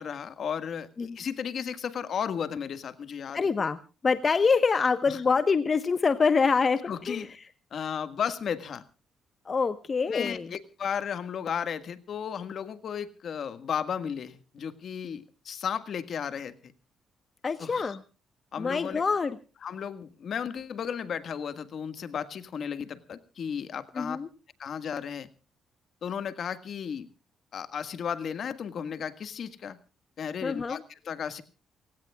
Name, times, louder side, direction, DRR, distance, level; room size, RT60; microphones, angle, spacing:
voice 1, 0.0-3.4 5.1-5.2 6.9-7.3 7.7-8.8 10.1-16.7 17.6-18.0 18.5-19.0 19.6-24.2 24.6-25.3 26.0-27.1 27.5-29.8 30.2-31.4, left 7 dB, 60° left, 12 dB, 1.7 m, -34 dB
voice 2, 3.3-3.8 4.0-7.3 9.4-10.5 17.4-18.0 18.6-19.4 23.9-24.3 30.4-30.8, left 5 dB, 35° left, 12 dB, 1.1 m, -25 dB
28.5 x 17.0 x 2.4 m, 0.35 s
cardioid pair, 90°, 0 cm